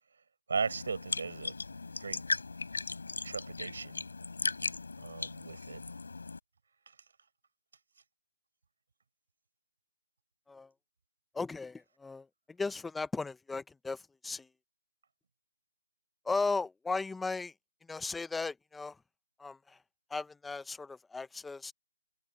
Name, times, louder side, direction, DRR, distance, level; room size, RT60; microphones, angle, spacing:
sound 1, 0.5-6.4, left 3 dB, 85° left, 7.2 m, -38 dB
voice 1, 0.5-1.6 2.0-2.2 3.2-4.1 5.0-5.8, right 5 dB, 65° right, 5.9 m, -37 dB
voice 2, 11.3-12.3 12.6-14.5 16.2-17.5 17.9-19.0 19.4-19.8 20.1-21.7, left 3 dB, 5° left, 0.8 m, -36 dB
hypercardioid pair, 160°, 0 cm